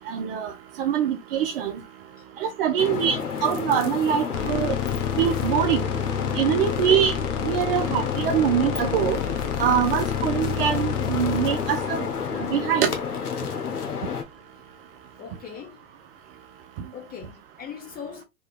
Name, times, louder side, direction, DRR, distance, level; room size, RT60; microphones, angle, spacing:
voice 1, 0.1-0.5 0.8-1.7 2.4-4.8 5.2-5.8 6.3-7.2 7.4-9.2 9.6-12.1 12.4-12.9, right 9 dB, 40° right, 0.4 m, -23 dB
sound 1, 2.8-14.2, left 6 dB, 90° left, 0.9 m, -31 dB
sound 2, 4.3-13.5, left 8 dB, 55° left, 0.8 m, -29 dB
voice 2, 15.2-15.8 16.9-18.2, left 7 dB, 20° left, 0.8 m, -40 dB
2.8 x 2.7 x 2.4 m
hypercardioid pair, 110°, 45 cm